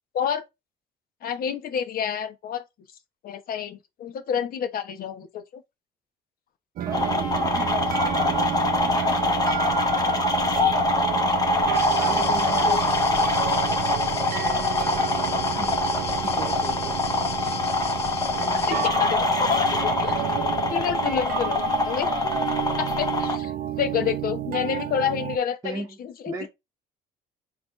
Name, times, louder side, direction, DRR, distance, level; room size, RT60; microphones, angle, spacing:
voice 1, 1.2-2.6 3.2-5.6 12.7-12.8 18.5-20.2 20.7-22.1 22.8-23.5 23.8-26.5, left 8 dB, 60° left, 1.1 m, -29 dB
voice 2, 6.8-9.4 12.0-14.9 15.4-17.0 18.3-19.3 22.1-22.5 25.6-26.0 26.3-26.5, right 3 dB, 20° right, 1.1 m, -38 dB
sound 1, 6.8-25.4, right 11 dB, 60° right, 0.6 m, -31 dB
sound 2, 6.9-23.4, left 2 dB, 20° left, 1.1 m, -24 dB
sound 3, 11.7-18.9, left 7 dB, 35° left, 0.6 m, -37 dB
4.2 x 3.2 x 3.1 m
cardioid pair, 110°, 17 cm